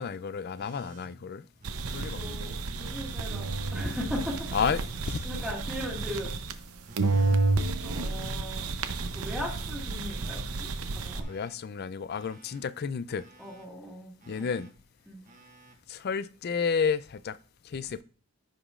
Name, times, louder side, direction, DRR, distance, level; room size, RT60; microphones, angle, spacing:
voice 1, 0.0-1.4 1.9-2.5 4.5-5.2 7.1-7.4 11.3-13.2 14.3-14.7 15.9-17.4 17.6-18.0, left 6 dB, 45° left, 0.4 m, -31 dB
Telephone, 0.6-1.1 1.6-2.2 2.6-3.2 3.7-4.3 4.7-5.3 5.8-6.3 6.8-7.4 7.9-8.4 8.9-9.5 10.0-11.6 11.8-12.6 13.1-13.6 14.2-14.7 15.2-15.7 16.9-17.0, equal, 35° right, 1.1 m, -48 dB
sound 1, 1.6-6.7 7.0-11.2, right 3 dB, 75° right, 0.7 m, -31 dB
voice 2, 2.1-4.7 5.2-6.3 7.8-8.7 9.0-11.2 13.4-14.4 15.1-15.2, left 1 dB, ahead, 1.7 m, -38 dB
14.5 x 5.0 x 2.4 m
head